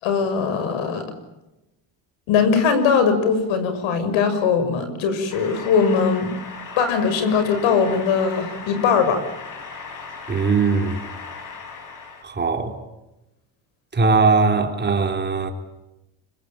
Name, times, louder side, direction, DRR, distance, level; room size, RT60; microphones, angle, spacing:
voice 1, 0.0-1.0 2.3-6.3 6.8-9.2, left 6 dB, 85° left, 6.3 m, -20 dB
sound 1, 5.3-12.2, left 5 dB, 40° left, 5.6 m, -37 dB
voice 2, 10.3-11.0 12.2-12.8 13.9-15.5, right 4 dB, 20° right, 3.6 m, -20 dB
26.0 x 24.0 x 9.2 m
cardioid pair, 150°, 46 cm